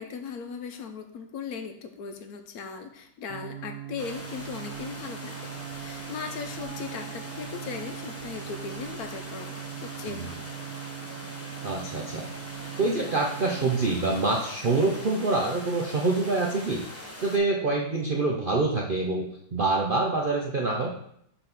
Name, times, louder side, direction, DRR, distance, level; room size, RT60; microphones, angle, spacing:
voice 1, 0.0-10.5, left 5 dB, 70° left, 6 dB, 1.1 m, -38 dB
sound 1, 3.3-13.9, right 11 dB, 40° right, 1.0 m, -40 dB
sound 2, 4.0-17.4, left 1 dB, 10° left, 0.7 m, -42 dB
voice 2, 11.6-12.2 12.8-16.8 17.2-19.3 19.5-20.9, right 3 dB, 55° right, 0 dB, 0.5 m, -26 dB
5.5 x 4.1 x 5.9 m, 0.71 s
omnidirectional pair, 1.8 m